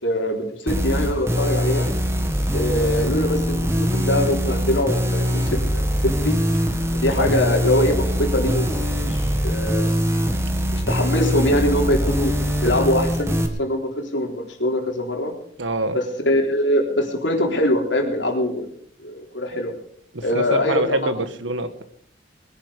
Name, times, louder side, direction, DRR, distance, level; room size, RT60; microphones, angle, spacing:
voice 1, 0.0-1.9 2.5-6.4 6.9-9.9 10.7-12.3 12.6-15.4 15.9-18.7 19.0-19.7 20.2-21.0, left 1 dB, 75° left, 2 dB, 3.5 m, -23 dB
sound 1, 0.7-13.5, equal, 15° right, 1.6 m, -22 dB
voice 2, 15.6-16.0 20.1-21.8, right 2 dB, 85° right, 11 dB, 1.5 m, -25 dB
21.0 x 10.5 x 5.0 m, 0.62 s
head